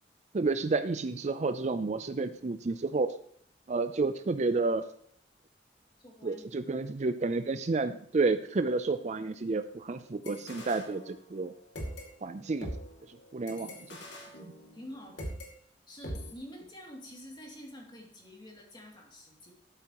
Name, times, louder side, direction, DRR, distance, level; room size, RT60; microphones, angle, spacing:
voice 1, 0.3-3.1 3.7-4.9 6.2-11.5 12.2-12.7 13.0-14.0 14.4-14.5, right 3 dB, 40° right, 11 dB, 0.4 m, -30 dB
voice 2, 6.0-6.6 14.7-15.3 15.9-19.5, equal, 25° left, -1 dB, 2.6 m, -48 dB
sound 1, 10.2-11.5 11.8-15.5 16.0-16.3, equal, 80° left, 2.2 m, -42 dB
12.5 x 8.4 x 3.0 m, 0.65 s
head